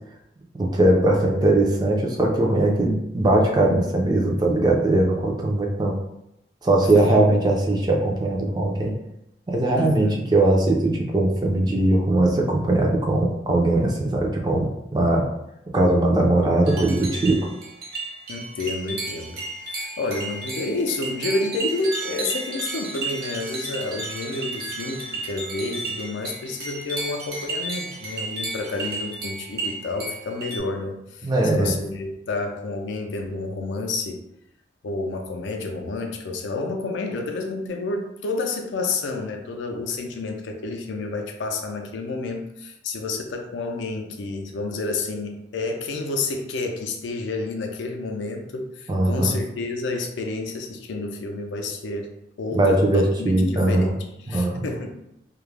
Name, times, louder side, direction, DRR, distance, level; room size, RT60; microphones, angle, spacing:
voice 1, 0.6-5.9 6.6-8.9 9.5-15.3 15.7-17.4 31.2-31.7 48.9-49.4 52.5-53.9 54.3-54.8, right 2 dB, 20° right, 0 dB, 0.4 m, -20 dB
voice 2, 6.8-7.4 9.7-10.3 18.3-34.2 34.8-55.0, left 3 dB, 80° left, 3 dB, 0.4 m, -30 dB
sound 1, 16.6-30.6, right 2 dB, 55° right, 0.7 m, -33 dB
2.3 x 2.0 x 3.2 m, 0.83 s
head